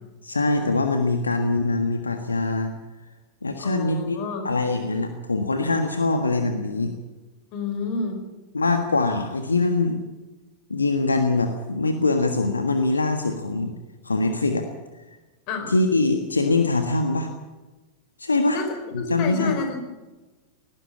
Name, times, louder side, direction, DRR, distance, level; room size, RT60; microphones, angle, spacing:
voice 1, 0.2-2.7 3.4-4.2 4.4-6.9 8.5-10.0 10.7-13.7 14.0-14.7 15.7-17.3 18.2-18.6 19.1-19.5, left 3 dB, 80° left, 6 dB, 1.5 m, -23 dB
voice 2, 3.6-4.5 7.5-8.2 15.5-15.7 18.5-18.7 18.9-19.8, left 4 dB, 45° left, 6 dB, 4.8 m, -29 dB
19.0 x 16.0 x 8.4 m, 1.2 s
figure-of-eight pair, 90°, 0 cm